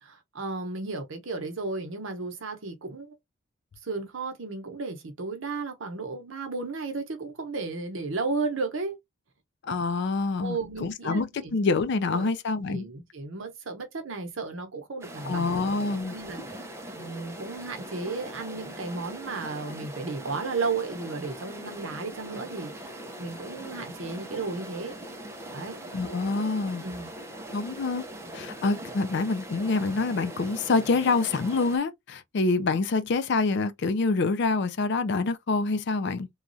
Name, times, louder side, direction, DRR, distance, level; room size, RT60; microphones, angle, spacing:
voice 1, 0.0-3.1 3.8-9.0 10.4-11.5 12.1-12.3 12.7-15.6 16.1-25.0 25.5-25.8 26.8-27.1, right 3 dB, 65° right, 0.8 m, -34 dB
voice 2, 9.6-12.9 15.2-16.1 25.9-26.8 27.5-28.0 28.3-36.3, left 3 dB, 55° left, 0.4 m, -26 dB
sound 1, 15.0-31.8, right 1 dB, 15° right, 0.5 m, -41 dB
3.0 x 2.3 x 2.6 m
head